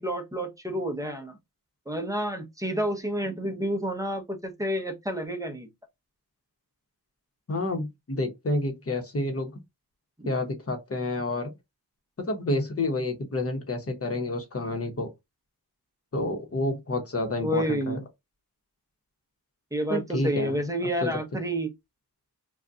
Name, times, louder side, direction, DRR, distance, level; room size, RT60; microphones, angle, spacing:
voice 1, 0.0-1.4 1.9-5.7 17.4-18.0 19.7-21.7, right 1 dB, 10° right, 0.7 m, -29 dB
voice 2, 7.5-9.6 10.2-11.5 12.2-15.1 16.1-18.0 19.9-20.6 21.0-21.1, left 2 dB, 35° left, 0.9 m, -29 dB
2.6 x 2.3 x 3.5 m
wide cardioid pair, 115°, 39 cm